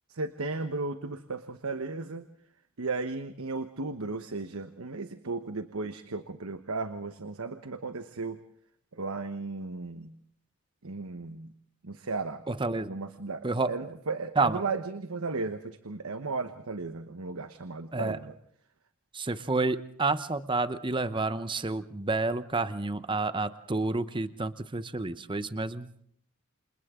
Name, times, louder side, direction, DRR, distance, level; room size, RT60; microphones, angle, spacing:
voice 1, 0.1-2.3 2.8-8.4 8.9-10.1 10.8-11.5 11.8-12.4 12.9-18.3, right 3 dB, 85° right, 9 dB, 1.1 m, -35 dB
voice 2, 12.5-12.9 13.4-13.7 14.4-14.6 17.9-18.2 19.1-25.9, right 3 dB, 25° right, 13 dB, 0.8 m, -29 dB
29.0 x 27.5 x 3.8 m, 0.66 s
head